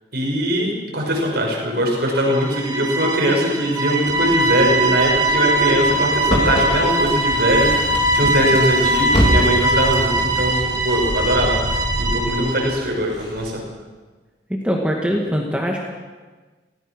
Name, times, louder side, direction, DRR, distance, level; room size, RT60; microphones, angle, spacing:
voice 1, 0.1-11.6 12.0-13.6, equal, 60° right, -1 dB, 5.8 m, -21 dB
sound 1, 2.1-12.8, right 2 dB, 20° right, 2.9 m, -21 dB
sound 2, 4.1-13.5, equal, 85° left, 5.9 m, -31 dB
sound 3, 5.9-6.0 6.3-10.1, equal, 30° left, 3.1 m, -24 dB
voice 2, 14.5-15.8, equal, 5° right, 0 dB, 2.0 m, -22 dB
24.5 x 18.0 x 6.4 m, 1.3 s
head